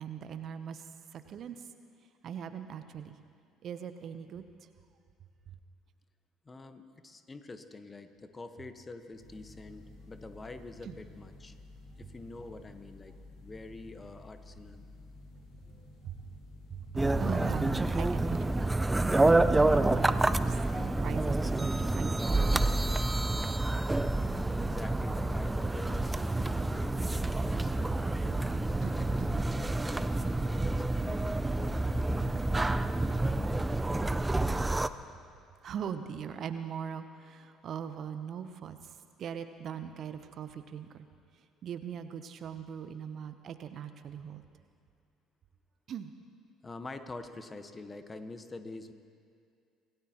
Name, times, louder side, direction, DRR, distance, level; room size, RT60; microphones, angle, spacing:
voice 1, 0.0-1.6 2.2-3.2 3.6-4.4 10.8-10.9 15.8-16.2 16.7-18.7 19.1-22.6 28.8-28.9 29.2-29.3 35.6-41.0 41.6-44.4 45.9-46.1, right 8 dB, 50° right, 10 dB, 0.8 m, -40 dB
voice 2, 6.4-11.5 12.0-14.8 24.5-28.5 29.0-34.2 46.6-48.9, left 3 dB, 25° left, 8 dB, 1.3 m, -46 dB
sound 1, 9.1-23.9, left 2 dB, 70° left, 4.1 m, -52 dB
sound 2, 17.0-34.9, right 2 dB, 15° right, 0.6 m, -28 dB
26.0 x 17.5 x 3.0 m, 2.3 s
hypercardioid pair, 55°, 0 cm